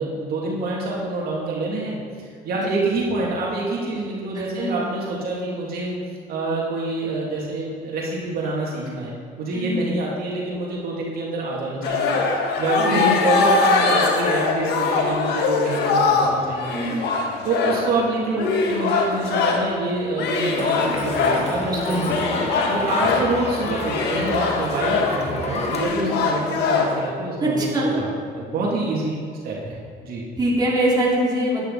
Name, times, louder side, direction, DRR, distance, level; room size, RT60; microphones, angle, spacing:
voice 1, 0.0-5.9 6.3-12.2 12.6-17.1 17.4-22.1 22.7-29.2 29.4-30.2, right 2 dB, 65° right, -4 dB, 2.8 m, -27 dB
sound 1, 11.8-19.7 20.2-21.5 22.0-27.1, left 4 dB, 80° left, 1.5 m, -22 dB
voice 2, 12.8-13.1 16.7-17.0 21.9-22.1 25.9-26.1 27.4-28.0 30.4-31.6, right 1 dB, 25° right, -5 dB, 2.9 m, -23 dB
Crowd, 20.6-25.8, left 2 dB, 40° left, 1.4 m, -28 dB
11.5 x 10.0 x 4.2 m, 2.1 s
cardioid pair, 110°, 17 cm